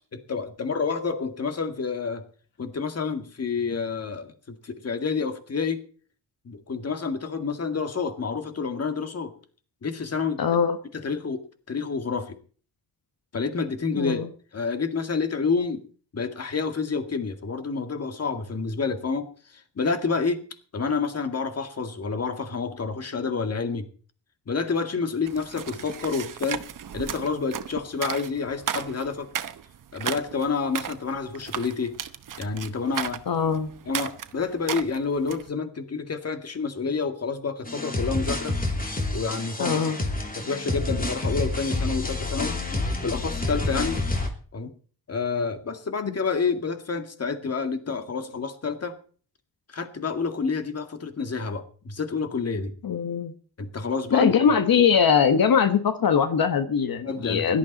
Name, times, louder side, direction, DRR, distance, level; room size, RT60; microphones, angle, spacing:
voice 1, 0.1-2.2 2.6-5.8 6.5-9.3 9.8-10.4 10.9-11.4 11.7-12.4 13.3-14.2 14.5-15.8 16.1-20.5 20.7-23.9 24.5-26.6 26.9-29.3 29.9-32.0 32.4-33.2 33.9-38.6 39.1-39.8 40.4-42.6 43.0-44.0 44.5-44.7 45.1-49.0 49.7-52.7 53.6-54.3 57.0-57.6, left 4 dB, 40° left, 8 dB, 2.1 m, -28 dB
voice 2, 10.4-10.8 13.9-14.3 33.3-33.7 39.6-40.0 46.0-46.1 52.8-53.3 54.1-57.6, left 7 dB, 65° left, 9 dB, 1.5 m, -21 dB
sound 1, 25.3-35.5, right 8 dB, 55° right, 1.0 m, -35 dB
sound 2, 37.7-44.3, left 2 dB, 25° left, 2.9 m, -28 dB
17.0 x 12.0 x 4.2 m, 0.42 s
wide cardioid pair, 130°, 37 cm